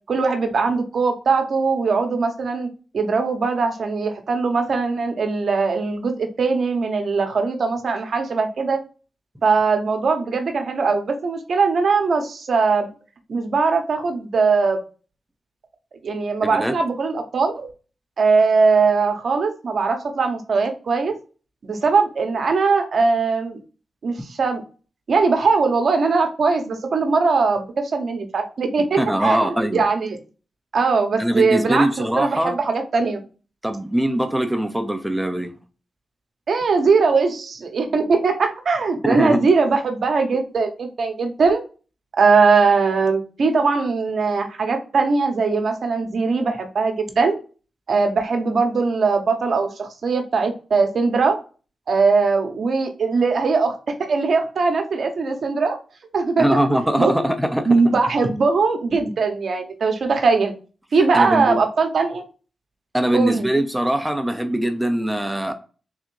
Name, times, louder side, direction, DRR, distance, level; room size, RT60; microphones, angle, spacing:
voice 1, 0.1-2.7 2.9-8.8 9.4-12.9 13.3-14.8 16.0-17.7 18.2-21.1 21.6-23.6 24.0-24.6 25.1-30.2 30.7-33.2 36.5-41.6 42.1-47.3 47.9-51.4 51.9-55.8 56.1-56.5 57.0-57.1 57.7-60.5 60.9-62.2 63.1-63.5, right 4 dB, 65° right, 0.9 m, -20 dB
voice 2, 29.0-29.8 31.2-32.6 33.6-35.5 39.0-39.4 56.4-57.8 61.1-61.6 62.9-65.5, right 1 dB, 10° right, 0.6 m, -21 dB
3.7 x 3.2 x 3.1 m
cardioid pair, 55°, 0 cm